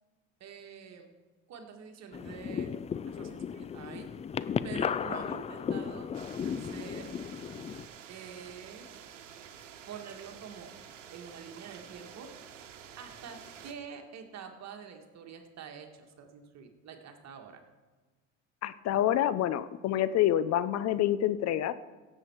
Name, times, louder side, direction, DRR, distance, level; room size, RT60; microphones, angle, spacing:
voice 1, 0.4-1.1 1.5-2.7 3.1-4.1 4.6-6.1 6.4-7.2 8.1-9.0 9.9-10.7 11.1-12.6 13.0-17.6, right 7 dB, 45° right, 4 dB, 1.9 m, -46 dB
sound 1, 2.1-7.9, left 7 dB, 20° left, 0.4 m, -35 dB
sound 2, 6.1-13.7, right 8 dB, 90° right, 1.1 m, -50 dB
voice 2, 18.6-21.7, left 12 dB, 45° left, 15 dB, 0.7 m, -27 dB
17.0 x 7.7 x 4.6 m, 1.3 s
hypercardioid pair, 75°, 36 cm